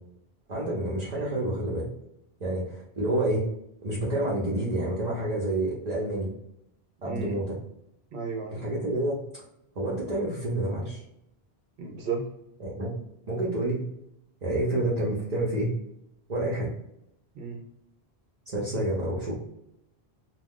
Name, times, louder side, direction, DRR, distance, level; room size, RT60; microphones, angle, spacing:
voice 1, 0.5-1.9 2.4-3.4 3.8-6.3 7.0-7.6 8.5-9.2 9.7-11.0 12.6-12.9 13.3-13.8 14.4-15.7 16.3-16.7 18.5-19.3, right 1 dB, 45° right, -5 dB, 0.8 m, -28 dB
voice 2, 7.0-7.4 8.1-8.6 11.8-12.3 17.4-17.6 18.7-18.9, right 5 dB, 85° right, 0 dB, 0.8 m, -34 dB
2.3 x 2.3 x 3.5 m, 0.80 s
omnidirectional pair, 1.0 m